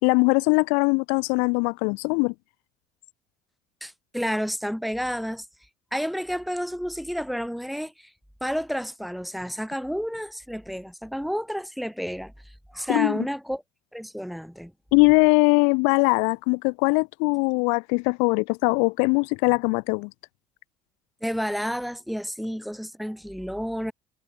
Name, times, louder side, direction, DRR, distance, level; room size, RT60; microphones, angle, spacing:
voice 1, 0.0-2.3 12.9-13.2 14.9-20.1, left 37 dB, 80° left, 0.4 m, -21 dB
voice 2, 3.8-5.5 5.9-8.1 8.4-12.3 12.7-13.6 13.9-14.7 21.2-23.9, equal, ahead, 1.3 m, -30 dB
supercardioid pair, 85°, 13 cm